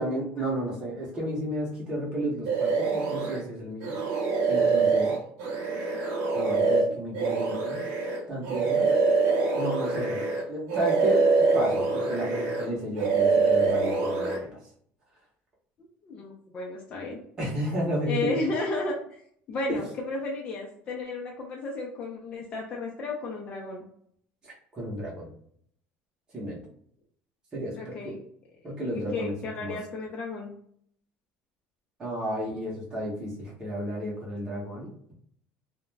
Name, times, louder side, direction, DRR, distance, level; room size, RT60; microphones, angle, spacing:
voice 1, 0.0-3.9 4.5-5.1 6.3-7.8 8.3-8.9 9.5-11.2 11.5-14.6 17.4-18.4 19.7-19.8 24.4-25.3 26.3-26.6 27.5-28.1 28.6-29.3 29.6-29.8 32.0-35.1, right 1 dB, 15° right, -5 dB, 0.8 m, -32 dB
sound 1, 2.5-3.4 3.8-10.4 10.7-12.7 13.0-14.4, right 4 dB, 80° right, 0.7 m, -25 dB
voice 2, 16.0-17.2 18.1-19.2 19.5-23.9 27.7-28.2 28.8-30.5, left 2 dB, 30° left, -2 dB, 0.4 m, -33 dB
2.4 x 2.1 x 3.2 m, 0.64 s
cardioid pair, 175°, 4 cm